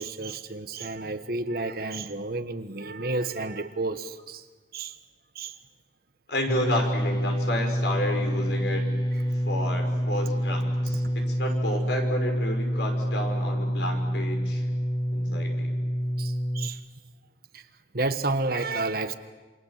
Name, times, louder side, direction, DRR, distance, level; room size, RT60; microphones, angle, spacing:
voice 1, 0.0-4.4 4.7-5.0 5.3-5.5 11.0-11.1 16.2-16.8 17.5-17.6 17.9-19.1, right 2 dB, 55° right, 1.4 m, -31 dB
voice 2, 6.3-8.9 9.5-14.7 15.1-15.7, left 1 dB, 70° left, 6.0 m, -31 dB
sound 1, 6.5-16.7, equal, 25° left, 1.3 m, -27 dB
28.0 x 27.0 x 7.5 m
head